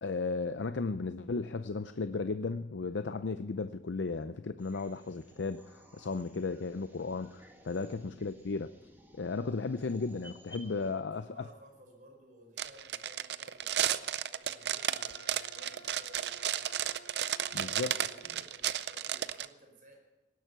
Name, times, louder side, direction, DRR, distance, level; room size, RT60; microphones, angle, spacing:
voice 1, 0.0-8.7 9.2-11.5 17.5-17.9, left 4 dB, 85° left, 11 dB, 0.6 m, -35 dB
sound 1, 4.6-10.9, equal, 10° right, 2.1 m, -57 dB
voice 2, 7.6-7.9 10.6-16.8 17.1-20.1, right 1 dB, 45° right, 1 dB, 4.9 m, -58 dB
sound 2, 12.6-19.5, right 10 dB, 65° right, 0.5 m, -33 dB
Wind instrument woodwind instrument, 14.7-18.4, left 1 dB, 15° left, 5.6 m, -55 dB
18.0 x 11.5 x 6.8 m, 1.0 s
head